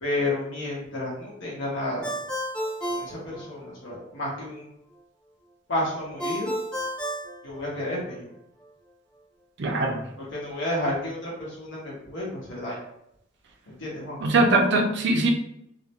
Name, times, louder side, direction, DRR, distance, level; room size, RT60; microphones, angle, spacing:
voice 1, 0.0-2.3 2.9-4.7 5.7-6.5 7.4-8.3 10.2-12.8 13.7-14.2, left 1 dB, 90° left, -5 dB, 0.8 m, -31 dB
Ringtone, 2.0-4.0 6.2-8.2, equal, 5° left, 0.4 m, -32 dB
voice 2, 9.6-10.0 14.2-15.3, right 2 dB, 65° right, 2 dB, 0.5 m, -21 dB
2.4 x 2.0 x 2.8 m, 0.78 s
head